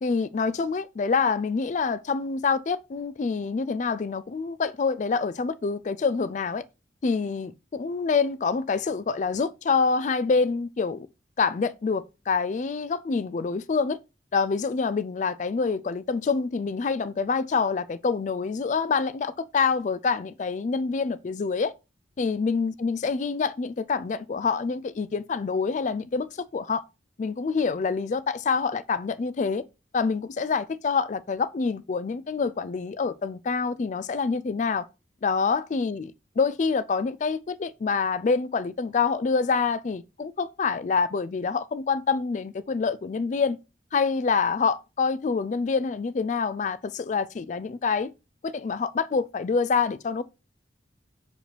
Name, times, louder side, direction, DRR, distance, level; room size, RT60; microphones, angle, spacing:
voice 1, 0.0-6.6 7.0-11.1 11.4-14.0 14.3-21.7 22.2-26.8 27.2-29.6 29.9-34.9 35.2-43.6 43.9-48.1 48.4-50.2, left 5 dB, 40° left, 0.3 m, -26 dB
6.1 x 4.8 x 3.3 m
head